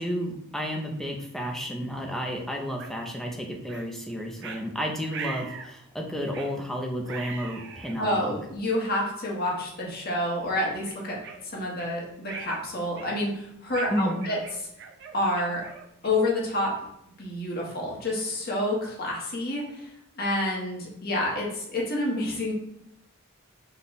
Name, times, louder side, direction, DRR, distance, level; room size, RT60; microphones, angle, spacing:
voice 1, 0.0-8.3 13.9-14.3, equal, ahead, 0 dB, 0.6 m, -31 dB
sound 1, 2.8-2.9 3.7-3.9 4.4-4.6 5.1-5.7 6.3-6.6 7.0-8.0 8.7-8.8 9.5-9.7 10.1-10.3 10.8-11.9 12.2-12.6 12.9-13.3 13.7-16.3, right 5 dB, 55° right, 0.6 m, -41 dB
voice 2, 8.0-14.4 15.1-15.7 16.0-16.8 17.2-19.9 20.2-22.5, left 1 dB, 45° left, -2 dB, 1.3 m, -28 dB
5.6 x 2.4 x 3.9 m, 0.79 s
head